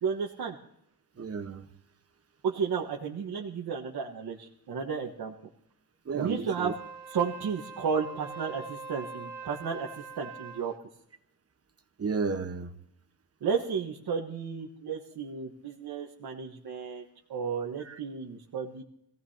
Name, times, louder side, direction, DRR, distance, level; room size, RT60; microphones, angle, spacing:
voice 1, 0.0-0.6 2.4-5.3 6.1-6.8 7.1-10.7 13.4-18.8, right 6 dB, 65° right, -2 dB, 1.5 m, -33 dB
voice 2, 1.2-1.7 6.0-6.7 12.0-12.7 17.8-18.0, right 4 dB, 35° right, 8 dB, 1.2 m, -33 dB
Wind instrument woodwind instrument, 6.4-10.7, right 4 dB, 80° right, 1.6 m, -43 dB
25.5 x 16.5 x 2.9 m, 0.76 s
cardioid pair, 115°, 40 cm